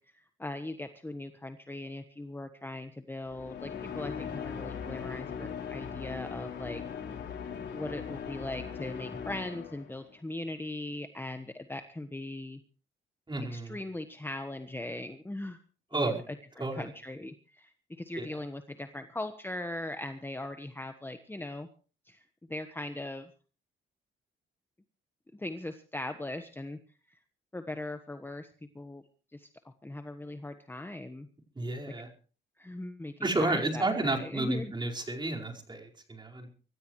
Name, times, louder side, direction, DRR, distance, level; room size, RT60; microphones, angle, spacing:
voice 1, 0.1-6.8 7.7-12.6 13.5-15.6 15.9-21.7 22.1-22.2 22.5-23.3 25.3-26.8 27.5-28.5 28.7-29.0 29.3-29.5 29.8-31.3 31.9-32.0 32.6-34.7, left 2 dB, 10° left, 8 dB, 1.3 m, -39 dB
sound 1, 3.2-10.1, left 7 dB, 60° left, 4.2 m, -39 dB
voice 2, 13.3-13.8 15.9-16.2 16.6-16.9 18.2-18.4 31.6-32.1 33.2-36.5, right 2 dB, 25° right, 0 dB, 4.9 m, -31 dB
25.0 x 14.5 x 3.2 m, 0.38 s
cardioid pair, 90°, 20 cm